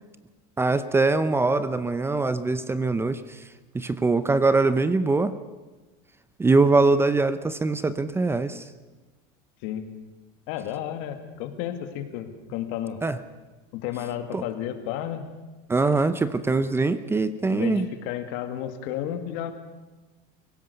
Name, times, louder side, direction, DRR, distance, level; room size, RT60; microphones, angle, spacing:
voice 1, 0.6-3.4 3.7-5.3 6.4-8.6 13.0-13.2 14.3-14.4 15.7-17.9, right 3 dB, 10° right, 13 dB, 0.7 m, -22 dB
voice 2, 9.6-9.9 10.5-13.0 13.7-15.3 17.5-19.5, left 11 dB, 65° left, 7 dB, 2.3 m, -32 dB
24.5 x 16.5 x 6.9 m, 1.2 s
supercardioid pair, 135°, 20 cm